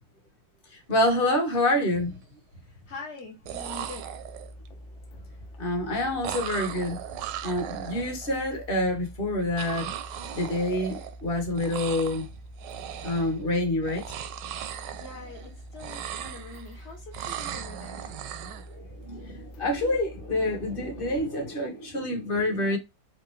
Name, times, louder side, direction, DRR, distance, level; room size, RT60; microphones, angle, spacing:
voice 1, 0.9-2.2 5.6-7.0 7.4-9.9 10.3-12.2 13.0-14.0 18.4-22.8, left 1 dB, 35° left, 1.0 m, -27 dB
sound 1, 1.6-2.2 3.2-3.3 3.5-4.7 6.2-8.4 9.6-11.3 11.5-12.3 12.6-13.4 13.8-15.5 15.7-16.8 17.1-18.7, right 11 dB, 75° right, 1.1 m, -38 dB
voice 2, 2.6-4.1 14.9-18.0, left 3 dB, 60° left, 0.7 m, -44 dB
sound 2, 3.4-21.2, equal, 75° left, 1.5 m, -46 dB
4.5 x 2.5 x 3.0 m
omnidirectional pair, 2.2 m